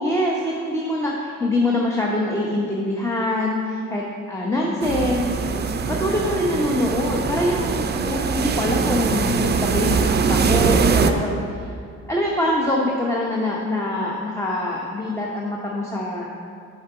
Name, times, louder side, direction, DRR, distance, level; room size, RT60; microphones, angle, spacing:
voice 1, 0.0-5.3 5.9-11.7 12.1-16.3, left 1 dB, 10° left, -2 dB, 0.9 m, -24 dB
sound 1, 4.8-11.1, right 5 dB, 35° right, 0.5 m, -22 dB
6.4 x 4.7 x 6.8 m, 2.4 s
cardioid pair, 90°, 30 cm